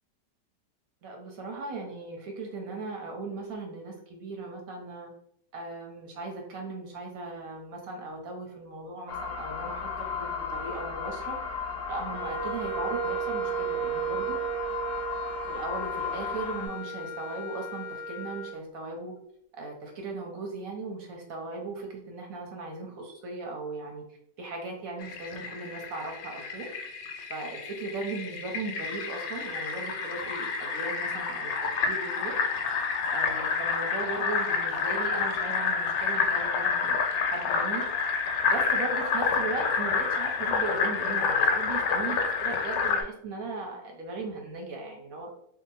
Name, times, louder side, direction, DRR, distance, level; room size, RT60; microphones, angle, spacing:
voice 1, 1.0-5.1 5.5-11.4 11.9-14.4 15.4-19.1 19.5-24.0 24.4-26.7 27.3-31.5 31.8-32.4 33.1-37.9 38.4-45.3, right 3 dB, 65° right, 1 dB, 1.0 m, -37 dB
sound 1, 9.1-16.7, left 6 dB, 65° left, 0.6 m, -35 dB
Wind instrument woodwind instrument, 12.1-18.6, right 7 dB, 90° right, 1.3 m, -35 dB
Fill (with liquid), 25.0-43.0, left 5 dB, 80° left, 1.2 m, -29 dB
2.8 x 2.4 x 4.0 m, 0.72 s
omnidirectional pair, 1.9 m